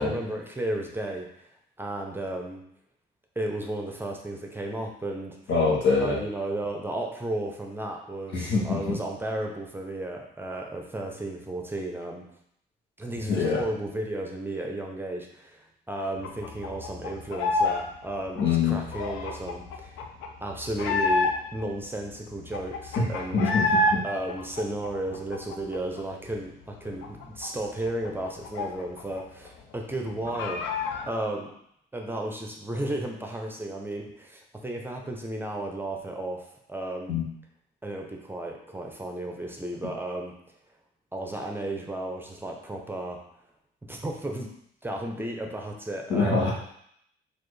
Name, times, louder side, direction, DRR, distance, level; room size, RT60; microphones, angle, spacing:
voice 1, 0.0-1.5 1.8-2.6 3.4-5.4 6.0-12.3 13.0-20.0 20.4-23.5 24.0-31.5 31.9-37.1 37.8-40.3 41.1-43.2 43.9-44.5 44.8-46.5, right 1 dB, 10° right, 1 dB, 0.6 m, -34 dB
voice 2, 5.5-6.2 8.3-8.9 13.3-13.6 18.4-18.8 23.0-23.1 23.3-24.0 37.1-37.2 46.1-46.5, left 4 dB, 70° left, -4 dB, 1.1 m, -24 dB
sound 1, 16.2-17.8 18.1-21.6 22.0-22.1 22.3-24.0 24.3-26.0 26.3-26.4 26.7-29.2 29.5-29.6 29.9-31.1, left 2 dB, 85° left, 0.5 m, -28 dB
4.1 x 2.5 x 3.2 m, 0.71 s
cardioid pair, 90°, 20 cm